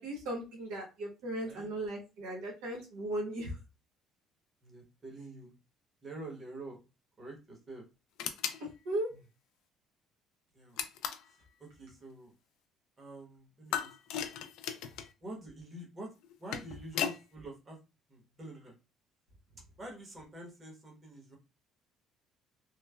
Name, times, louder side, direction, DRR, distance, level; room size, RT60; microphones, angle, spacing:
voice 1, 0.0-3.6 8.6-9.1, right 1 dB, 90° right, -1 dB, 1.0 m, -37 dB
voice 2, 1.4-1.7 4.6-5.5 6.0-6.8 7.2-7.8 9.1-9.2 10.5-10.8 11.6-12.3 13.0-14.2 15.2-16.1 16.4-17.8 18.1-18.7 19.8-21.4, right 1 dB, 30° right, -1 dB, 1.0 m, -47 dB
sound 1, 8.2-8.6 10.8-11.3 13.7-15.1 16.2-17.2, left 9 dB, 80° left, 0.3 m, -36 dB
3.1 x 2.0 x 2.2 m, 0.29 s
cardioid pair, 110°, 0 cm